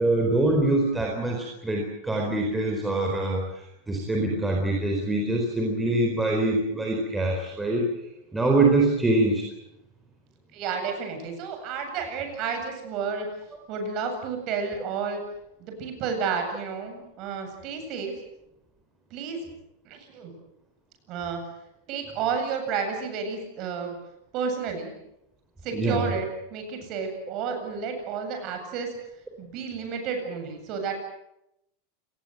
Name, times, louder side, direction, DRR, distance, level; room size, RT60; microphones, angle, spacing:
voice 1, 0.0-3.4 3.9-7.9 8.3-9.4 25.7-26.0, right 2 dB, 5° right, 0 dB, 4.3 m, -24 dB
voice 2, 10.5-13.3 13.7-15.2 15.6-18.1 19.1-19.4 19.8-20.3 21.1-21.4 21.9-24.0 24.3-24.9 25.6-28.9 29.4-30.9, right 6 dB, 40° right, 5 dB, 8.0 m, -31 dB
29.0 x 20.0 x 8.0 m, 0.83 s
supercardioid pair, 160°, 0 cm